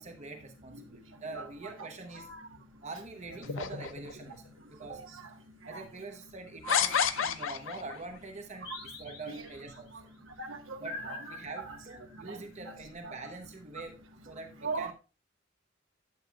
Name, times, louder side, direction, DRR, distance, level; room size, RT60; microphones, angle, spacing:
voice 1, 0.0-2.3 2.8-5.0 5.7-9.9 10.8-11.0 11.3-14.0 14.3-14.9, right 3 dB, 35° right, 5 dB, 0.9 m, -44 dB
sound 1, 3.4-4.4 5.2-5.3 6.7-8.0, left 8 dB, 80° left, 0.6 m, -30 dB
sound 2, 6.8-8.0 8.6-9.8 10.8-12.3, left 3 dB, 55° left, 3.7 m, -45 dB
voice 2, 10.4-10.8 11.0-11.2 11.6-11.8 12.3-12.4 12.7-12.8 13.0-13.1 14.6-14.9, right 4 dB, 85° right, 4 dB, 1.3 m, -37 dB
11.5 x 7.9 x 2.3 m, 0.33 s
head